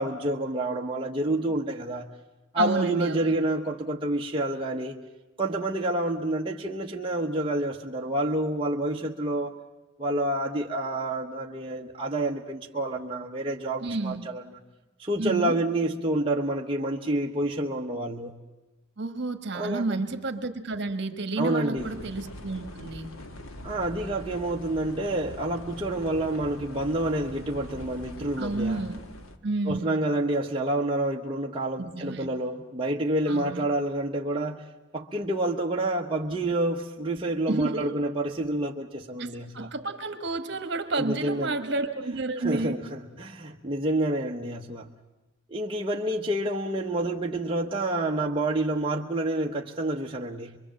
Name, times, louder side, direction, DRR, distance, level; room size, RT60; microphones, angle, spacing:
voice 1, 0.0-2.1 2.5-5.0 5.4-9.5 10.0-14.4 15.0-18.4 19.5-20.0 21.4-21.9 23.6-28.8 29.7-34.6 34.9-39.7 41.0-41.6 42.4-44.9 45.5-50.6, right 1 dB, 25° right, -1 dB, 1.0 m, -28 dB
voice 2, 2.6-3.3 13.8-14.2 15.2-15.6 19.0-23.1 28.4-29.0 29.4-30.0 31.8-32.3 33.3-33.6 37.5-38.0 39.2-42.8, right 3 dB, 55° right, 8 dB, 1.4 m, -30 dB
sound 1, 21.8-29.4, left 1 dB, 85° left, 1.4 m, -42 dB
24.0 x 23.5 x 7.5 m, 1.1 s
head